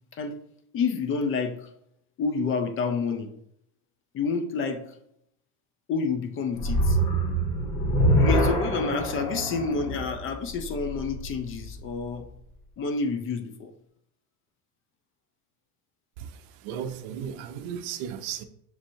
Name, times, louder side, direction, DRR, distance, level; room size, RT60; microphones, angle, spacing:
voice 1, 0.7-1.7 2.2-3.3 4.1-4.9 5.9-7.0 8.2-12.3 12.8-13.7, left 4 dB, 35° left, 0.5 m, -29 dB
sound 1, 6.5-11.8, right 1 dB, 65° left, 1.3 m, -25 dB
voice 2, 16.2-18.4, right 8 dB, 65° right, 0.6 m, -35 dB
6.3 x 2.7 x 2.6 m
supercardioid pair, 110°, 39 cm